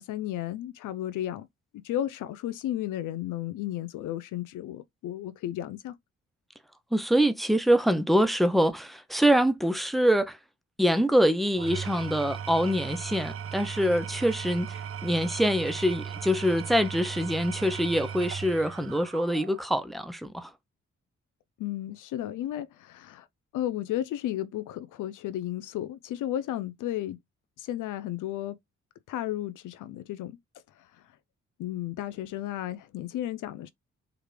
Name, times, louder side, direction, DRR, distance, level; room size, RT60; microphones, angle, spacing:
voice 1, 0.0-1.5 1.7-6.0 21.6-23.3 23.5-27.2 27.6-28.6 29.1-30.4 30.8-30.9 31.6-33.7, left 12 dB, 90° left, 0.5 m, -33 dB
voice 2, 6.9-10.4 10.8-20.5, equal, ahead, 0.7 m, -25 dB
Engine / Tools, 11.5-19.8, right 8 dB, 50° right, 0.5 m, -37 dB
4.8 x 2.4 x 3.2 m
cardioid pair, 60°, 30 cm